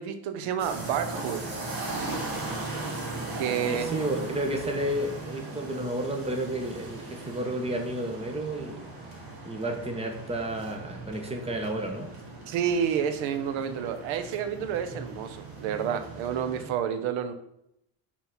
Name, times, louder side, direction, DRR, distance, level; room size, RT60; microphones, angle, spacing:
voice 1, 0.0-1.4 3.4-3.9 12.5-17.3, right 8 dB, 90° right, 10 dB, 0.8 m, -29 dB
sound 1, 0.6-16.7, right 2 dB, 50° right, 2.1 m, -38 dB
voice 2, 3.6-8.9 9.4-12.1, right 1 dB, 15° right, 3 dB, 1.1 m, -31 dB
5.7 x 4.3 x 5.9 m, 0.80 s
cardioid pair, 125°, 45 cm